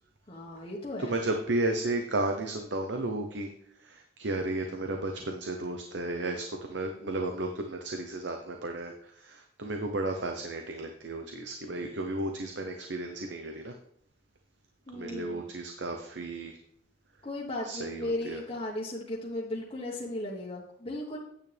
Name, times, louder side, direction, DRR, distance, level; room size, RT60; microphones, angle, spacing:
voice 1, 0.3-1.2 14.9-15.4 17.2-21.2, left 1 dB, 30° left, -5 dB, 1.3 m, -36 dB
voice 2, 1.0-3.5 3.8-13.7 14.9-16.6 17.6-18.4, right 2 dB, 70° right, 4 dB, 0.9 m, -33 dB
9.6 x 8.4 x 3.4 m, 0.70 s
head